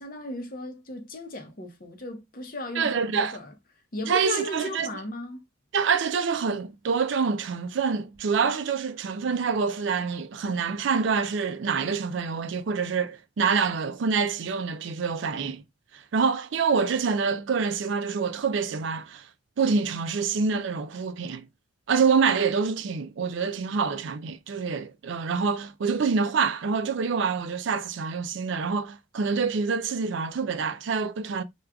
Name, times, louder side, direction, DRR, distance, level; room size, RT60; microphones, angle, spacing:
voice 1, 0.0-3.5 3.9-5.4, left 2 dB, 40° left, 0.8 m, -35 dB
voice 2, 2.8-3.4 4.1-4.9 5.7-15.6 15.9-19.3 19.6-21.4 21.9-31.4, right 5 dB, 60° right, 0.4 m, -26 dB
4.8 x 2.4 x 2.2 m
head